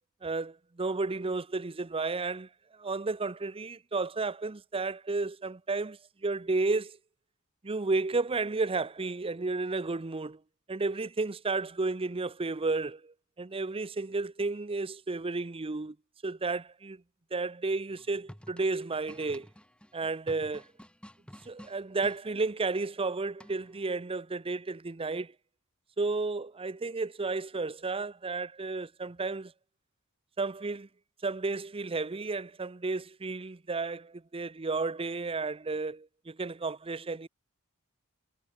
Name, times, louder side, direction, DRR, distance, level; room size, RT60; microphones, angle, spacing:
voice 1, 0.2-2.5 2.8-6.9 7.6-10.4 10.7-16.0 16.2-17.0 17.3-19.5 19.9-20.6 21.5-25.3 26.0-29.5 30.4-30.9 31.2-37.3, right 3 dB, 25° right, 0.7 m, -32 dB
sound 1, 17.9-22.2 23.4-23.8, equal, 5° left, 4.4 m, -51 dB
head